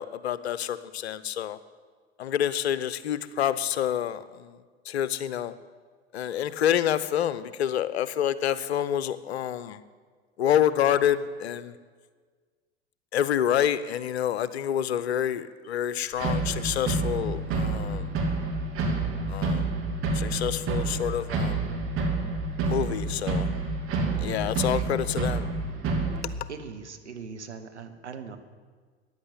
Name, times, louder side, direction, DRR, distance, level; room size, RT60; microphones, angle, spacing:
voice 1, 0.0-1.6 2.2-4.6 4.9-5.5 6.1-9.8 10.4-11.7 13.1-18.1 19.3-19.6 20.1-21.7 22.6-23.5 24.2-25.5, left 10 dB, 70° left, 16 dB, 0.8 m, -27 dB
sound 1, 16.2-26.2, right 3 dB, 40° right, 3.0 m, -28 dB
voice 2, 26.5-28.4, right 5 dB, 80° right, 6 dB, 1.5 m, -40 dB
14.5 x 10.5 x 8.3 m, 1.5 s
figure-of-eight pair, 80°, 34 cm